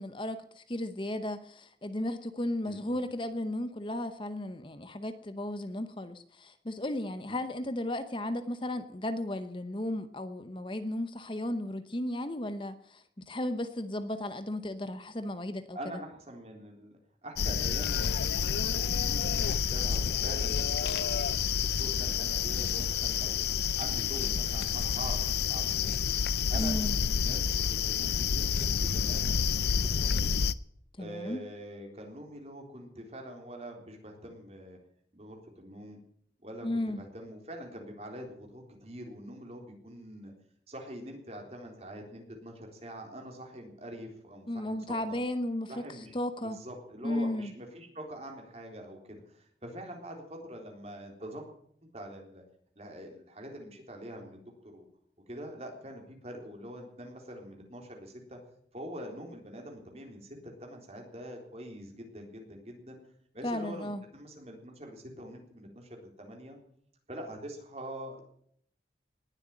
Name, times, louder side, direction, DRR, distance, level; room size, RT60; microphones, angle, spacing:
voice 1, 0.0-15.8 26.6-27.0 31.0-31.4 36.6-37.0 44.5-46.6 47.0-47.5 63.4-64.0, left 1 dB, 30° left, 10 dB, 0.8 m, -34 dB
voice 2, 2.6-3.0 7.3-7.4 15.7-16.9 17.2-23.4 23.8-26.1 26.5-30.2 31.0-34.8 35.1-36.0 36.4-40.3 40.7-45.2 45.7-51.5 51.9-52.4 52.8-54.9 55.3-58.4 58.7-63.0 63.3-66.6 67.1-68.2, right 1 dB, 35° right, 2 dB, 3.8 m, -44 dB
sound 1, 17.4-30.5, left 7 dB, 65° left, 0.5 m, -29 dB
19.5 x 7.9 x 9.0 m, 0.67 s
head